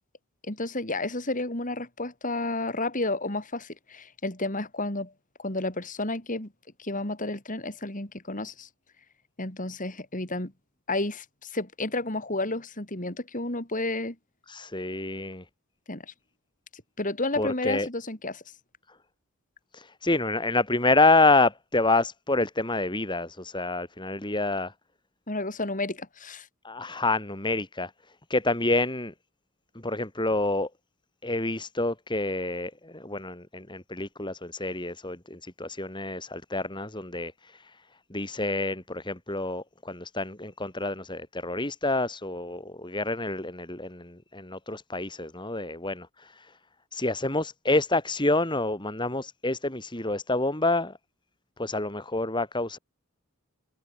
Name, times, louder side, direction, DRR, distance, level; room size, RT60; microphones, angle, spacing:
voice 1, 0.4-5.1 5.4-6.5 6.8-8.7 9.4-10.5 10.9-14.2 15.9-16.1 16.7-18.4 25.3-26.5, left 2 dB, 35° left, 3.6 m, -31 dB
voice 2, 14.5-15.5 17.4-17.9 19.7-24.7 26.6-27.9 28.3-29.1 29.8-30.7 31.2-37.8 38.1-46.6 46.9-51.0 51.6-52.8, left 2 dB, 20° left, 3.5 m, -28 dB
head